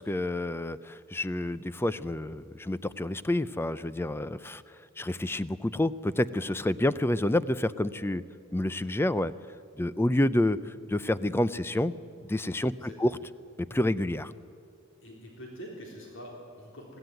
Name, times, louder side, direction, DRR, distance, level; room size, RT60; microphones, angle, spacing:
voice 1, 0.0-4.6 5.0-8.2 8.5-9.3 9.8-11.9 12.2-13.2 13.6-14.3, left 1 dB, 10° left, 16 dB, 0.4 m, -28 dB
voice 2, 12.8-13.2 15.0-17.0, equal, 65° left, -1 dB, 3.7 m, -45 dB
21.0 x 15.5 x 9.3 m, 2.3 s
head